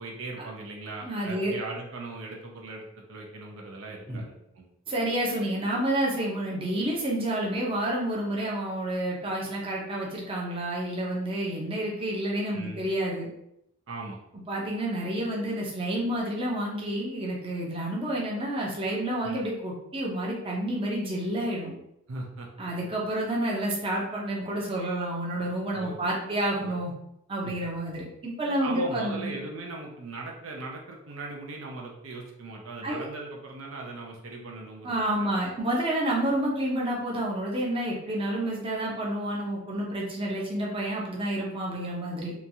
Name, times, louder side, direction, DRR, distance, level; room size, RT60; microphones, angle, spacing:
voice 1, 0.0-4.7 12.5-12.8 13.9-14.2 19.2-19.4 22.1-22.7 25.7-26.1 26.6-26.9 27.4-27.5 28.6-35.5, right 3 dB, 70° right, 0 dB, 0.5 m, -39 dB
voice 2, 1.0-1.5 4.1-4.2 4.9-13.3 14.5-21.7 22.6-26.9 27.3-29.3 32.8-33.1 34.8-42.3, right 1 dB, 25° right, -3 dB, 0.6 m, -29 dB
2.9 x 2.3 x 2.6 m, 0.80 s
head